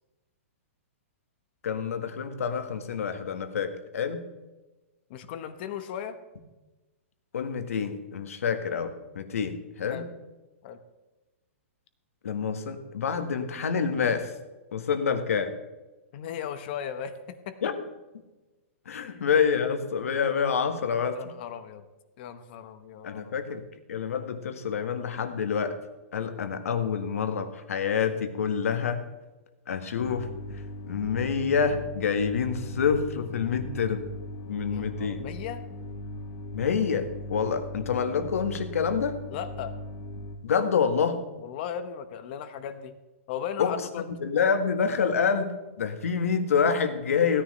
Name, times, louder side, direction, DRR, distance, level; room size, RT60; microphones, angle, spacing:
voice 1, 1.6-4.2 7.3-10.1 12.2-14.3 14.7-15.6 17.6-17.7 18.8-21.3 23.0-25.8 26.1-29.1 29.7-30.3 30.9-34.1 34.5-35.3 36.5-39.2 40.4-41.2 43.6-43.8 44.2-47.4, left 6 dB, 85° left, 8 dB, 1.5 m, -27 dB
voice 2, 5.1-6.2 9.9-10.1 10.6-10.8 16.1-17.7 19.0-19.3 21.1-21.8 22.2-23.3 34.7-35.6 39.3-39.7 41.4-42.9 43.3-44.1, left 8 dB, 45° left, 10 dB, 1.1 m, -37 dB
sound 1, 30.0-40.4, equal, 30° left, 2.0 m, -39 dB
16.5 x 10.0 x 3.2 m, 1.1 s
hypercardioid pair, 150°, 8 cm